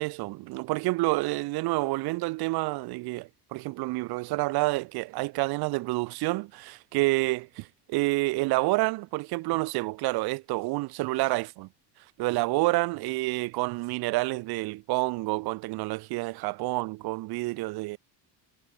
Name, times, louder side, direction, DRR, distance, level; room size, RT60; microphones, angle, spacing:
voice 1, 0.0-11.7 12.2-18.0, right 22 dB, 50° right, 0.8 m, -28 dB
cardioid pair, 175°, 48 cm